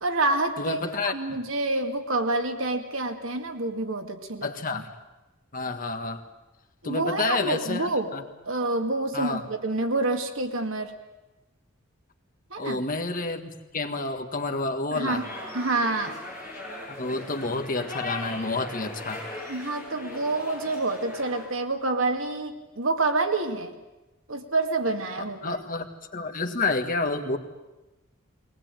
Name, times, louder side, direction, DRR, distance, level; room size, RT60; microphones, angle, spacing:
voice 1, 0.0-4.8 6.8-8.1 8.5-10.9 12.5-12.8 14.9-15.2 15.5-16.2 19.5-23.7 24.3-25.6, right 2 dB, 70° right, 5 dB, 2.2 m, -28 dB
voice 2, 0.6-1.1 4.4-4.9 5.5-6.2 6.8-8.2 9.1-9.4 12.6-15.3 16.9-19.2 25.2-27.4, left 3 dB, 40° left, 6 dB, 1.7 m, -29 dB
sound 1, 15.1-21.5, left 2 dB, 15° right, 7.6 m, -39 dB
22.0 x 19.0 x 9.1 m, 1.1 s
head